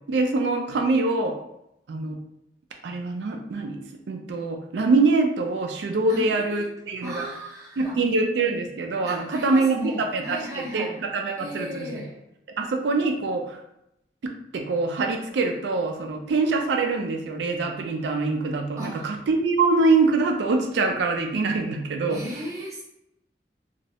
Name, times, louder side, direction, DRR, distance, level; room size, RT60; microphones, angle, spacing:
voice 1, 0.1-1.4 1.9-2.2 2.8-3.8 4.1-7.3 7.8-12.0 12.6-13.6 14.2-22.2, right 3 dB, 70° right, 3 dB, 0.3 m, -24 dB
voice 2, 6.1-6.6 7.0-8.0 9.0-11.0 11.4-12.2 18.8-19.1 22.1-22.8, equal, 20° right, -5 dB, 0.6 m, -35 dB
2.3 x 2.0 x 2.7 m, 0.82 s
head